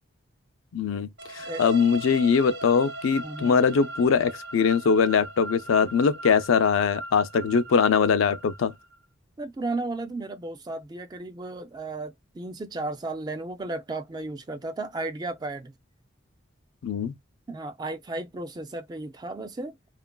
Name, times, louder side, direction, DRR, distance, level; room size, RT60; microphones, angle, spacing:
voice 1, 0.7-1.1 1.3-8.7 16.8-17.1, left 6 dB, 90° left, 0.4 m, -22 dB
sound 1, 1.2-9.0, right 2 dB, 55° right, 0.7 m, -39 dB
voice 2, 3.2-3.5 9.4-15.7 17.5-19.8, right 2 dB, 20° right, 0.3 m, -34 dB
2.9 x 2.4 x 2.2 m
head